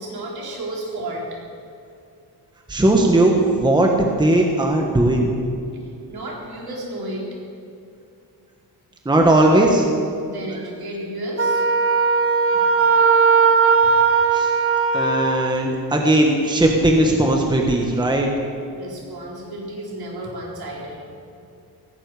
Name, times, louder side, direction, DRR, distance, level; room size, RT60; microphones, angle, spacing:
voice 1, 0.0-1.4 6.1-7.4 10.2-11.7 12.7-12.9 13.8-13.9 18.7-21.1, right 1 dB, 60° right, -2 dB, 4.1 m, -32 dB
voice 2, 2.7-5.3 9.0-9.9 14.3-14.5 14.9-18.3, right 1 dB, 10° right, 1 dB, 1.3 m, -17 dB
Wind instrument woodwind instrument, 11.4-15.5, right 5 dB, 35° right, 0.9 m, -17 dB
17.5 x 16.0 x 4.9 m, 2.5 s
wide cardioid pair, 155°, 41 cm